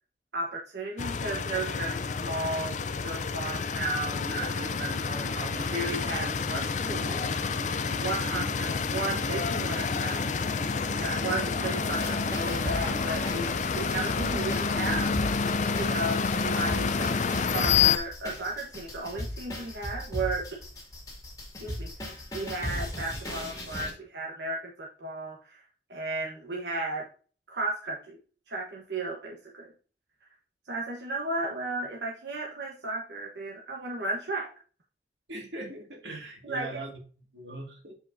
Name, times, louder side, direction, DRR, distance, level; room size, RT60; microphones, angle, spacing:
voice 1, 0.3-7.3 7.9-10.6 11.0-15.2 15.7-20.6 21.6-21.9 22.3-25.6 25.9-27.1 27.5-28.2 28.5-29.7 30.7-34.5 36.4-36.8, right 2 dB, 70° right, -2 dB, 1.2 m, -34 dB
sound 1, 1.0-18.0, left 5 dB, 40° left, 0.4 m, -29 dB
sound 2, 3.9-13.2, right 2 dB, 30° right, 0.7 m, -43 dB
sound 3, 11.9-23.9, left 1 dB, 20° left, 2.3 m, -37 dB
voice 2, 35.3-37.0 37.3-37.9, right 2 dB, 90° right, 2 dB, 2.0 m, -40 dB
7.9 x 5.1 x 2.6 m, 0.39 s
head